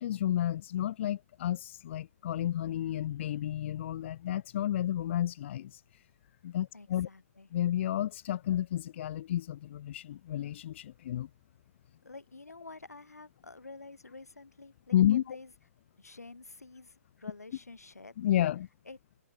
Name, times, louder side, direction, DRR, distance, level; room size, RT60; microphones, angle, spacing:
voice 1, 0.0-5.8 6.4-7.1 7.5-11.3 14.9-15.4 18.2-18.7, left 12 dB, 50° left, 0.4 m, -31 dB
voice 2, 6.7-7.5 12.0-15.5 16.0-18.2 18.8-19.0, left 3 dB, 85° left, 3.1 m, -49 dB
figure-of-eight pair, 125°, 8 cm